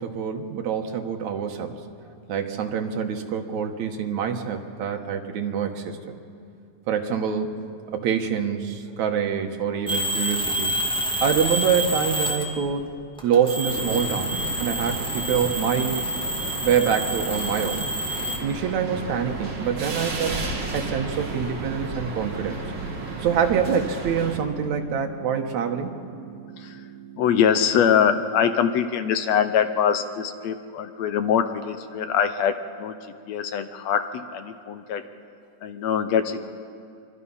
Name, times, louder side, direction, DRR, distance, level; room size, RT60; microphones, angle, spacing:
voice 1, 0.0-1.8 2.3-6.1 6.9-7.6 7.9-10.8 11.2-12.9 13.2-16.1 16.6-17.8 18.4-20.4 20.7-22.6 23.2-25.9, right 7 dB, 75° right, 4 dB, 2.6 m, -25 dB
sound 1, 9.9-12.7 13.2-18.4, equal, ahead, 1.7 m, -28 dB
sound 2, 13.7-24.4, right 3 dB, 45° right, 3.1 m, -33 dB
sound 3, 18.1-28.1, right 10 dB, 45° left, 7.6 m, -44 dB
voice 2, 27.2-33.0 33.3-35.0 35.6-36.5, left 8 dB, 70° left, 9 dB, 1.9 m, -23 dB
25.5 x 24.5 x 5.6 m, 2.3 s
omnidirectional pair, 3.3 m